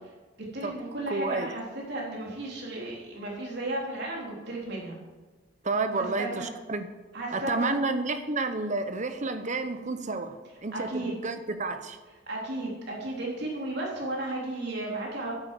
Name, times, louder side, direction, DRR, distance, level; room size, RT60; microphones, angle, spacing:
voice 1, 0.5-5.0 6.0-6.5 7.1-7.8 10.7-11.1 12.3-15.3, right 2 dB, 60° right, -3 dB, 3.6 m, -34 dB
voice 2, 1.1-1.5 5.6-6.9 7.3-12.0, right 3 dB, 40° right, 9 dB, 0.9 m, -30 dB
9.9 x 8.5 x 7.5 m, 1.2 s
head